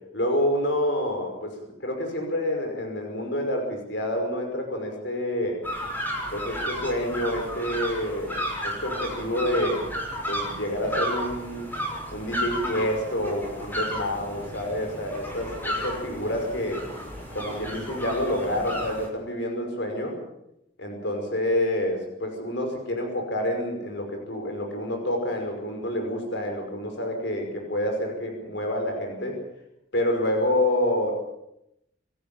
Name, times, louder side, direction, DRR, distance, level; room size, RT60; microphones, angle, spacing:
voice 1, 0.1-1.5 1.8-5.6 6.3-9.9 10.3-11.7 12.1-16.8 17.3-20.2 20.8-29.3 29.9-31.1, left 1 dB, 60° left, 3 dB, 5.6 m, -28 dB
sound 1, 5.6-19.1, equal, 10° left, 6.4 m, -33 dB
27.0 x 13.5 x 9.0 m, 0.83 s
head